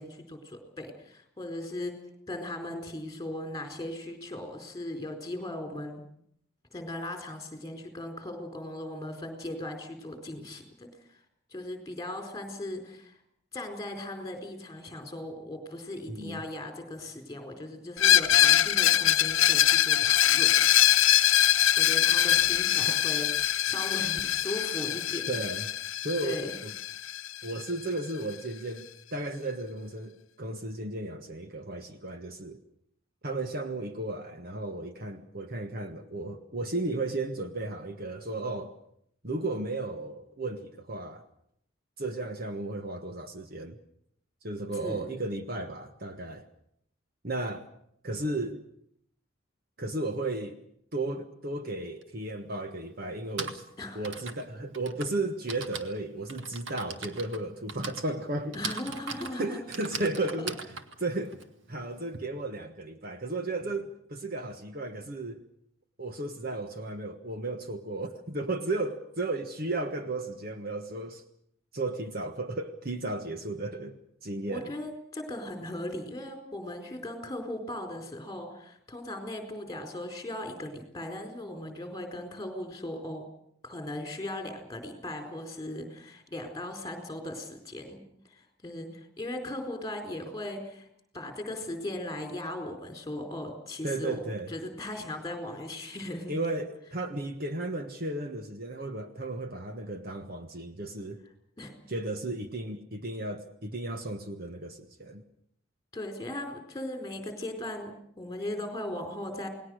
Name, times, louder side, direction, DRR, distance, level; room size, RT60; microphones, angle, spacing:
voice 1, 0.0-1.9 2.3-6.0 6.7-10.9 11.5-13.2 13.5-20.5 21.8-25.4 26.2-26.5 44.7-45.1 53.8-54.1 58.5-59.6 74.5-83.2 83.6-88.0 88.3-90.9 91.1-96.3 101.6-101.8 105.9-109.5, left 1 dB, 15° left, 4 dB, 4.4 m, -38 dB
voice 2, 16.1-16.4 22.9-23.0 25.3-25.7 26.0-26.7 27.4-32.6 33.2-38.7 39.2-41.2 42.0-43.8 44.4-46.5 47.2-47.7 48.0-48.6 49.8-50.6 50.9-53.6 53.9-58.6 59.3-60.6 61.0-61.4 61.7-65.4 66.0-71.2 71.7-74.7 93.8-94.5 96.3-101.2 101.9-105.2, right 2 dB, 45° right, 7 dB, 1.4 m, -34 dB
Screech, 18.0-27.6, left 11 dB, 75° left, 0.9 m, -23 dB
Typing, 52.0-52.1 53.1-62.2, right 4 dB, 65° right, 1.9 m, -40 dB
29.0 x 19.5 x 6.5 m, 0.70 s
head